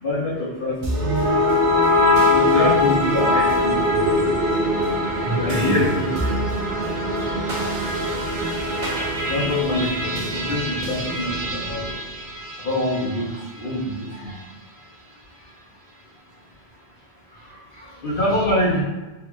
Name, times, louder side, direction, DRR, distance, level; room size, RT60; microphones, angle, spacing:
voice 1, 0.0-1.1 2.3-4.0 5.4-6.1 9.3-11.9 12.6-13.3 13.6-14.3 18.0-18.8, left 2 dB, 60° left, -5 dB, 0.8 m, -24 dB
sound 1, 0.8-13.1, left 1 dB, 55° right, 0.7 m, -22 dB
voice 2, 4.8-5.9 7.6-7.7 13.2-13.4 14.1-14.4 15.3-15.5 17.3-18.5, equal, 30° right, -7 dB, 1.2 m, -32 dB
3.4 x 2.3 x 3.0 m, 1.2 s
omnidirectional pair, 1.1 m